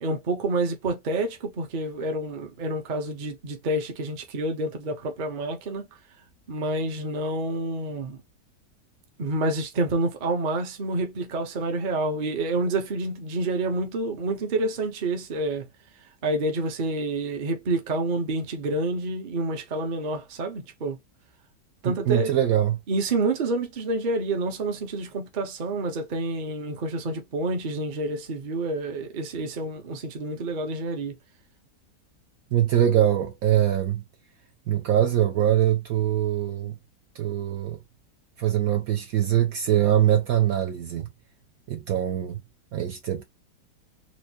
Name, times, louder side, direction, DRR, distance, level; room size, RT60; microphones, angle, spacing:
voice 1, 0.0-5.9 6.5-8.2 9.2-15.7 16.2-21.0 21.8-22.3 22.9-31.2, right 2 dB, 45° right, 0.7 m, -28 dB
voice 2, 21.8-22.8 32.5-34.0 34.7-36.8 37.1-37.8 38.4-41.1 41.7-42.4 42.7-43.2, right 11 dB, 70° right, 0.9 m, -23 dB
4.4 x 2.1 x 2.7 m
omnidirectional pair, 1.9 m